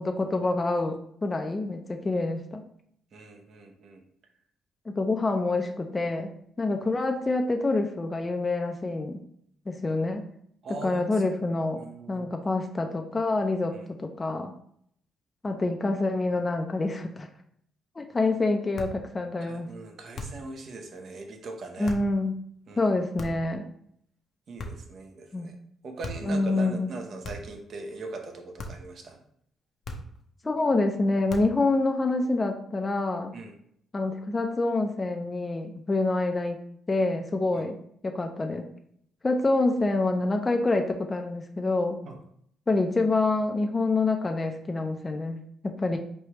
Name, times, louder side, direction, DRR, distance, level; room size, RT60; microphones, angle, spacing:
voice 1, 0.0-2.6 4.9-6.3 6.6-9.2 9.7-10.2 10.7-11.8 12.1-13.7 14.0-14.5 15.4-17.3 18.0-19.7 21.8-22.4 22.8-23.7 25.3-25.5 26.2-26.9 30.4-33.3 33.9-36.6 36.9-37.8 38.0-38.7 39.2-42.0 42.7-45.4 45.6-46.0, left 2 dB, 25° left, 4 dB, 0.5 m, -26 dB
voice 2, 3.1-4.0 10.6-11.4 11.7-12.3 13.7-13.9 19.4-22.0 22.7-22.9 24.5-25.5 25.8-29.2 33.3-33.5 37.5-37.7 42.0-42.2, right 3 dB, 55° right, 3 dB, 0.8 m, -41 dB
sound 1, 18.7-19.1 20.1-20.5 21.8-22.1 23.2-23.6 24.6-25.0 26.0-26.4 27.2-27.6 28.6-28.9 29.8-30.3 31.3-31.7, left 1 dB, 60° left, 0.7 m, -39 dB
4.4 x 3.3 x 3.0 m, 0.67 s
cardioid pair, 90°, 0 cm